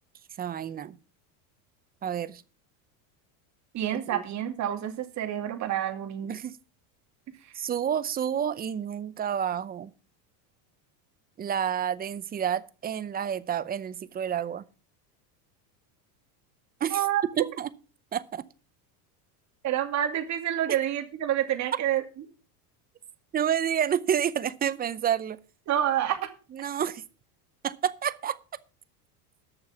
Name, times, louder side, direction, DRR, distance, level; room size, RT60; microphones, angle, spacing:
voice 1, 0.4-0.9 2.0-2.4 3.9-4.2 6.3-6.6 7.5-9.9 11.4-14.6 16.8-17.0 17.4-17.7 18.1-18.4 23.3-25.4 26.5-27.0 27.6-28.4, right 9 dB, 20° right, 0.6 m, -29 dB
voice 2, 3.7-6.3 16.9-17.5 19.6-22.0 25.7-26.3, right 11 dB, 35° right, 2.5 m, -28 dB
9.7 x 6.7 x 7.2 m
supercardioid pair, 145°, 45 cm